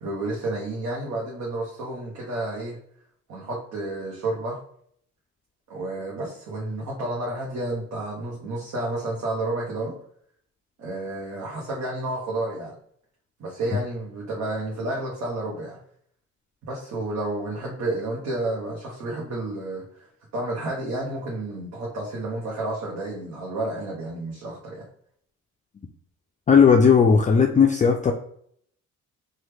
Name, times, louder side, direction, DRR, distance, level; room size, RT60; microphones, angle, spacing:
voice 1, 0.0-2.8 3.3-4.6 5.7-10.0 10.8-12.8 13.4-15.8 16.6-24.9, right 2 dB, 65° right, -3 dB, 1.0 m, -31 dB
voice 2, 26.5-28.1, left 6 dB, 25° left, 2 dB, 0.3 m, -16 dB
2.9 x 2.3 x 3.2 m, 0.65 s
cardioid pair, 90°, 30 cm